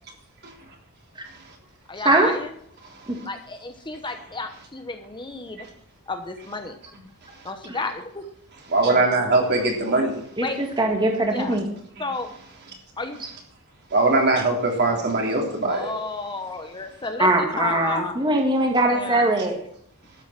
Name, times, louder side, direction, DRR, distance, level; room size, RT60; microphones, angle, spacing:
voice 1, 1.9-2.4 3.2-5.7 6.1-6.8 7.4-8.2 10.4-10.6 11.3-11.6 12.0-12.3 13.0-13.2 15.7-17.3 17.6-18.2 18.9-19.3, left 3 dB, 20° left, 6 dB, 1.0 m, -32 dB
voice 2, 8.7-10.2 13.9-16.0, right 2 dB, 50° right, 1 dB, 3.5 m, -21 dB
voice 3, 10.4-11.7 13.2-13.3 17.2-19.6, right 1 dB, 20° right, 2 dB, 2.0 m, -21 dB
12.5 x 9.2 x 6.0 m, 0.68 s
head